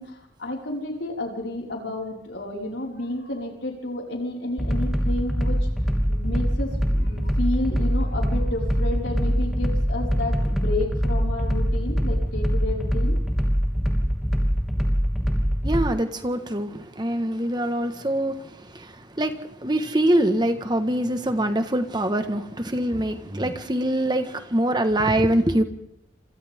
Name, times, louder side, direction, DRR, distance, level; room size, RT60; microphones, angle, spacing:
voice 1, 0.0-5.7 6.1-13.2, left 2 dB, 80° left, -1 dB, 5.4 m, -31 dB
sound 1, 4.6-15.8, equal, ahead, 3.0 m, -23 dB
voice 2, 15.6-25.6, right 1 dB, 25° right, 8 dB, 1.6 m, -24 dB
27.0 x 27.0 x 3.7 m, 0.77 s
head